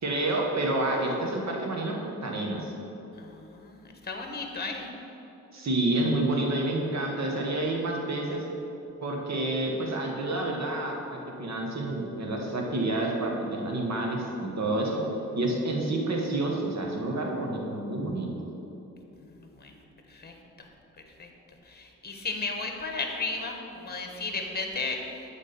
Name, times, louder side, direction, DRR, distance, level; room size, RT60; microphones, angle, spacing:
voice 1, 0.0-2.7 5.5-8.4 9.0-15.0 15.3-18.3, right 2 dB, 55° right, 0 dB, 1.5 m, -29 dB
voice 2, 3.1-4.9 19.2-19.8 20.1-20.7 21.2-21.3 21.6-25.2, left 3 dB, 30° left, 3 dB, 1.2 m, -35 dB
8.2 x 3.7 x 6.8 m, 3.0 s
cardioid pair, 60°, 33 cm